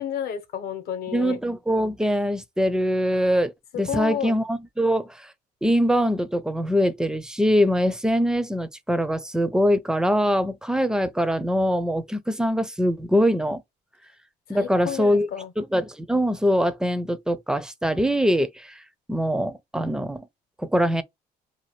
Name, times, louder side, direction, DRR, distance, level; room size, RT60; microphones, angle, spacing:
voice 1, 0.0-1.4 3.7-4.4 14.5-15.5, left 9 dB, 65° left, 0.8 m, -31 dB
voice 2, 1.1-5.3 5.6-13.6 14.5-15.3 15.6-18.8 19.1-20.3 20.6-21.0, equal, 5° right, 0.4 m, -23 dB
2.8 x 2.3 x 2.9 m
cardioid pair, 110°, 17 cm